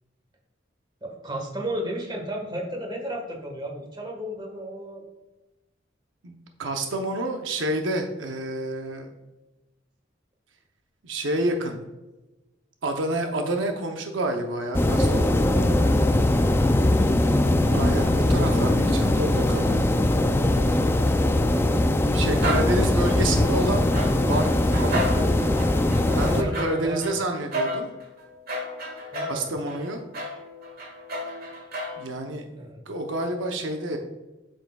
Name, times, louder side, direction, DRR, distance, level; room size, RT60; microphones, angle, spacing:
voice 1, 1.0-5.0 22.5-22.9 26.3-27.2 29.1-29.6 32.6-32.8, right 1 dB, 25° right, 1 dB, 1.4 m, -34 dB
voice 2, 6.2-9.1 11.0-11.8 12.8-15.5 17.7-19.9 22.1-24.0 24.3-25.5 26.1-27.9 29.3-30.0 32.0-32.5 32.9-34.0, right 1 dB, 80° right, 4 dB, 0.7 m, -29 dB
sound 1, 14.7-26.4, left 1 dB, 10° left, 0.4 m, -21 dB
sound 2, 22.3-23.5 23.9-32.1, equal, 50° right, 1.8 m, -33 dB
8.0 x 6.5 x 2.3 m, 1.1 s
head